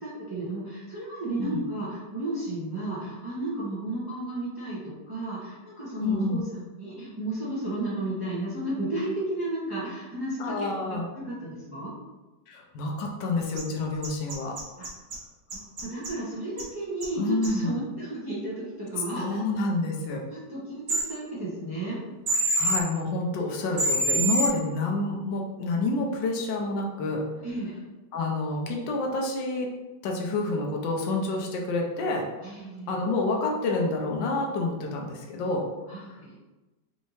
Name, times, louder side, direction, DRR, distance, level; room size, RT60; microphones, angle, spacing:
voice 1, 0.0-6.4 6.8-11.9 14.8-14.9 15.5-19.4 20.2-22.0 27.4-27.8 32.4-33.1 35.9-36.3, right 2 dB, 20° right, -8 dB, 0.6 m, -33 dB
voice 2, 6.0-6.4 10.4-11.1 12.5-14.6 17.2-17.7 19.1-20.2 22.6-27.2 28.1-29.7 30.0-32.3 32.9-35.7, left 2 dB, 80° left, 0 dB, 1.3 m, -28 dB
sound 1, 13.6-13.7 14.0-15.2 15.5-16.1 16.6-16.7 17.0-17.1 17.4-17.5 20.9-21.0 22.3-22.8 23.8-24.5, right 1 dB, 50° right, 1.1 m, -25 dB
4.3 x 2.7 x 3.0 m, 1.1 s
omnidirectional pair, 2.0 m